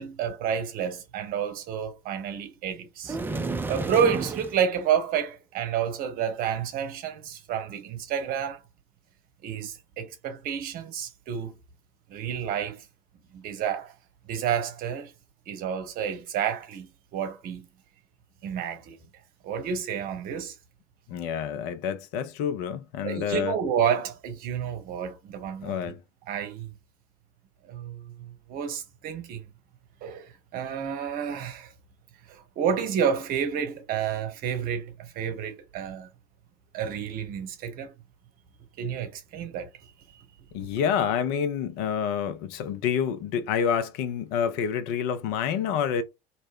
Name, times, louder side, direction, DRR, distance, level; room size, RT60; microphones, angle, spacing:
voice 1, 0.0-3.2 3.7-8.6 9.4-11.5 12.1-12.8 13.3-13.9 14.3-15.1 15.5-17.6 18.4-19.0 19.4-20.5 23.0-25.8 26.3-26.7 27.6-29.4 30.0-31.7 32.3-36.1 36.7-37.9 38.8-39.7, right 8 dB, 45° right, 0.8 m, -30 dB
sound 1, 3.0-4.6, right 3 dB, 10° right, 0.3 m, -31 dB
voice 2, 21.1-23.6 25.6-26.0 40.5-46.0, left 8 dB, 55° left, 0.5 m, -28 dB
2.6 x 2.0 x 3.5 m
figure-of-eight pair, 65°, 20 cm